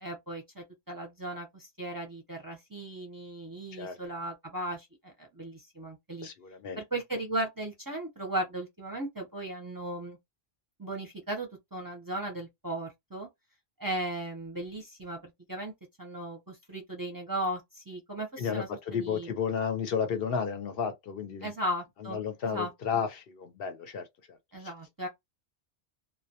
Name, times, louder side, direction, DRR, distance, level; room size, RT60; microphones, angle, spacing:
voice 1, 0.0-6.3 6.8-10.2 10.8-13.3 13.8-15.7 16.0-18.7 19.0-19.3 21.4-22.2 22.5-22.7 24.5-25.1, right 1 dB, 25° right, 0.6 m, -36 dB
voice 2, 6.2-6.8 18.4-21.5 22.1-24.7, left 6 dB, 70° left, 0.8 m, -33 dB
2.2 x 2.1 x 2.7 m
omnidirectional pair, 1.1 m